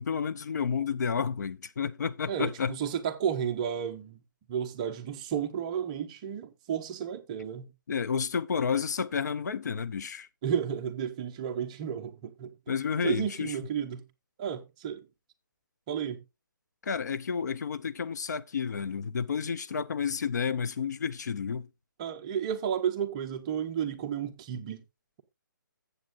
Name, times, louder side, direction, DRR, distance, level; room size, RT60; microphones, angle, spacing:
voice 1, 0.0-2.8 7.9-10.3 12.7-13.5 16.8-21.7, left 6 dB, 55° left, 0.5 m, -31 dB
voice 2, 2.3-4.2 4.5-7.7 10.4-12.6 13.0-14.0 14.4-15.1 15.9-16.2 22.0-24.8, right 8 dB, 20° right, 0.6 m, -32 dB
14.0 x 7.8 x 2.4 m
hypercardioid pair, 165°, 11 cm